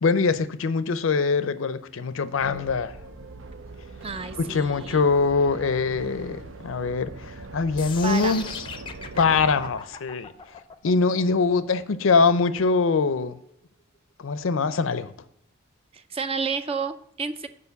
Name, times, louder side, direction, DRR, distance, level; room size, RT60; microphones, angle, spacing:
voice 1, 0.0-2.9 4.4-8.4 9.2-10.3 10.8-13.4 14.2-15.1, left 4 dB, 80° left, 0.5 m, -23 dB
sound 1, 2.4-9.7, right 3 dB, 80° right, 0.7 m, -41 dB
voice 2, 4.0-5.0 8.0-8.5 15.9-17.5, right 5 dB, 30° right, 0.4 m, -31 dB
sound 2, 7.8-13.8, left 5 dB, 25° left, 0.5 m, -39 dB
6.9 x 5.1 x 6.9 m
head